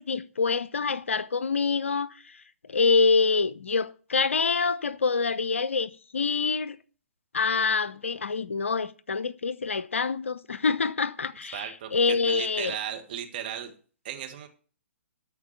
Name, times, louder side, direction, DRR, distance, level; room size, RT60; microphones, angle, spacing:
voice 1, 0.0-2.4 2.7-6.8 7.3-12.8, left 4 dB, 70° left, 0.6 m, -26 dB
voice 2, 11.5-13.7 14.0-14.5, right 10 dB, 45° right, 1.7 m, -36 dB
13.0 x 4.5 x 8.3 m
figure-of-eight pair, 120°, 7 cm